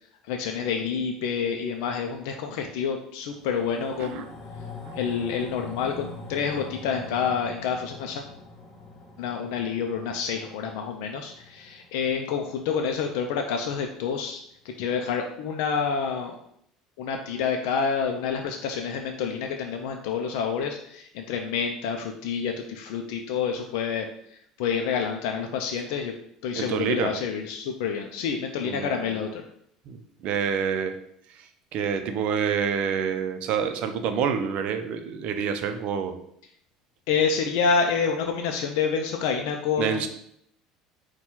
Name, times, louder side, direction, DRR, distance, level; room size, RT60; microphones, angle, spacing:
voice 1, 0.3-4.3 4.9-8.3 9.2-14.4 14.8-16.3 17.0-24.1 24.6-26.1 26.4-29.4 37.1-40.1, left 6 dB, 70° left, 3 dB, 0.4 m, -28 dB
sound 1, 3.3-13.9 14.2-14.3, left 2 dB, 40° left, 1.0 m, -44 dB
voice 2, 26.5-27.1 28.6-29.2 29.9-31.0 31.4-36.2 39.8-40.1, right 7 dB, 60° right, 8 dB, 0.5 m, -28 dB
4.2 x 2.2 x 4.3 m, 0.71 s
hypercardioid pair, 70°, 2 cm